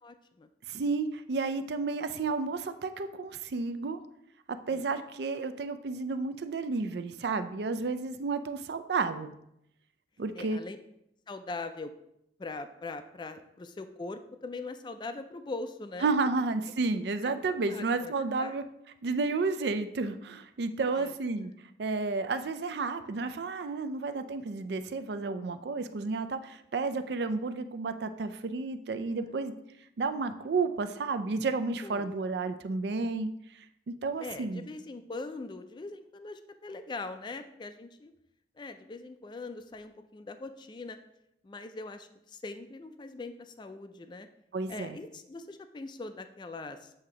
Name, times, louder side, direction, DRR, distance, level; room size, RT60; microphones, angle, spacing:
voice 1, 0.0-0.5 4.7-5.0 10.4-10.8 11.3-11.9 12.4-16.1 17.2-17.3 17.7-18.6 21.0-21.1 31.8-32.1 34.2-38.1 38.6-41.0 41.4-44.3 44.7-46.9, left 3 dB, 25° left, 9 dB, 0.3 m, -41 dB
voice 2, 0.7-4.0 4.5-9.3 10.2-10.6 16.0-18.6 19.0-21.5 21.8-29.5 30.0-33.3 33.9-34.7 44.5-45.0, right 4 dB, 65° right, 10 dB, 0.4 m, -31 dB
7.8 x 2.8 x 4.8 m, 0.79 s
head